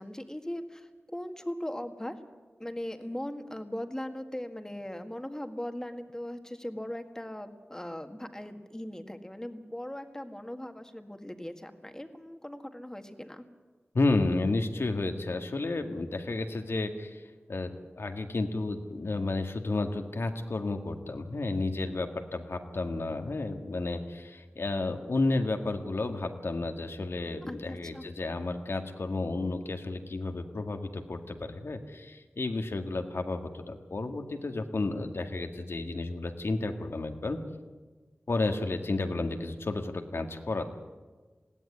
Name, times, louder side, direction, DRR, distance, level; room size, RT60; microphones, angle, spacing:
voice 1, 0.0-2.2 2.6-13.4 27.4-28.1, left 1 dB, 15° left, 7 dB, 1.8 m, -39 dB
voice 2, 13.9-17.2 17.5-37.4 38.3-40.6, left 2 dB, 70° left, 6 dB, 1.9 m, -32 dB
20.0 x 16.5 x 9.9 m, 1.3 s
wide cardioid pair, 80°, 4 cm